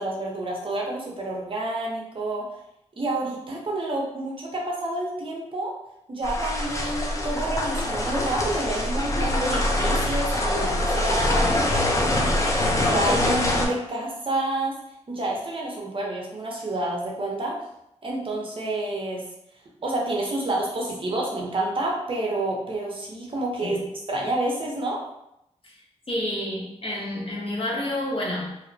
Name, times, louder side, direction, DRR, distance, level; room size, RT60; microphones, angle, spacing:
voice 1, 0.0-2.5 3.0-5.7 6.1-14.7 15.1-17.6 18.0-19.2 19.8-23.8 24.1-25.0, right 2 dB, 45° right, -2 dB, 0.6 m, -29 dB
sound 1, 6.2-13.7, left 1 dB, 25° left, 0.4 m, -24 dB
voice 2, 25.6-28.6, left 1 dB, 50° left, -4 dB, 0.7 m, -30 dB
2.7 x 2.1 x 2.5 m, 0.81 s
wide cardioid pair, 110°, 12 cm